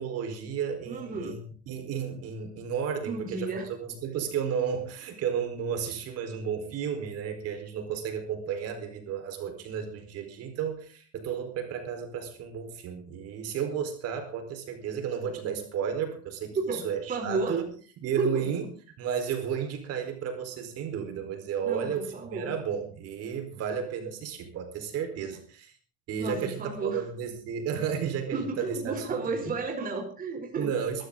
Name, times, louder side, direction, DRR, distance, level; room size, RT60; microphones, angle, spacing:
voice 1, 0.0-17.7 18.0-18.7 19.0-25.8 26.1-29.5 30.6-31.1, right 7 dB, 55° right, 6 dB, 4.5 m, -33 dB
voice 2, 0.9-1.4 3.0-3.7 16.7-17.6 18.2-18.5 21.6-22.5 26.2-27.0 28.3-30.7, right 3 dB, 30° right, 3 dB, 3.9 m, -32 dB
21.0 x 13.5 x 3.9 m, 0.40 s
cardioid pair, 135°, 30 cm